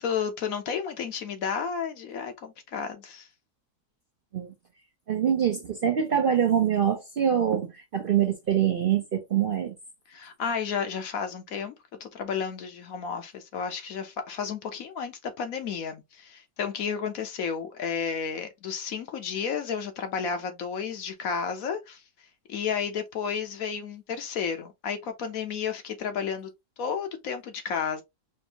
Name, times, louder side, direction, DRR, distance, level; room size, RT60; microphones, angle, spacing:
voice 1, 0.0-3.3 10.1-11.7 12.0-22.0 22.5-26.5 26.8-28.0, left 6 dB, 70° left, 1.3 m, -32 dB
voice 2, 5.1-9.7, right 9 dB, 55° right, 0.6 m, -24 dB
4.4 x 2.6 x 2.8 m
omnidirectional pair, 1.5 m